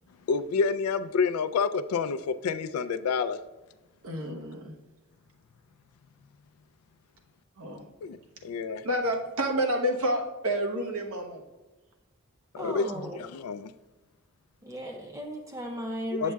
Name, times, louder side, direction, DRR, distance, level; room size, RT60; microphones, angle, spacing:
voice 1, 0.3-3.4 8.0-8.2 8.4-8.8 12.5-13.7 16.1-16.3, left 5 dB, 90° left, 13 dB, 0.3 m, -28 dB
voice 2, 4.0-4.7 7.6-7.9 8.8-11.4, equal, 80° right, 2 dB, 1.0 m, -29 dB
voice 3, 12.6-13.4 14.6-16.3, right 1 dB, 15° right, 2 dB, 0.5 m, -36 dB
7.2 x 7.2 x 2.3 m, 1.1 s
head